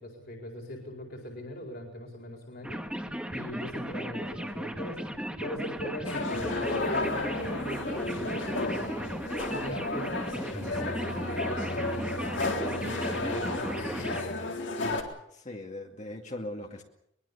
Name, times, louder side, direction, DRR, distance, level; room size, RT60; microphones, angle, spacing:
voice 1, 0.0-2.8 3.3-9.1 9.5-12.3 12.7-14.3, left 1 dB, 55° left, 1 dB, 4.5 m, -41 dB
sound 1, 2.6-14.2, equal, 5° right, 1.8 m, -36 dB
sound 2, 6.0-15.0, left 2 dB, 75° left, 3.6 m, -33 dB
voice 2, 15.3-16.8, left 1 dB, 40° left, 1 dB, 2.4 m, -40 dB
23.0 x 21.5 x 7.0 m, 0.75 s
head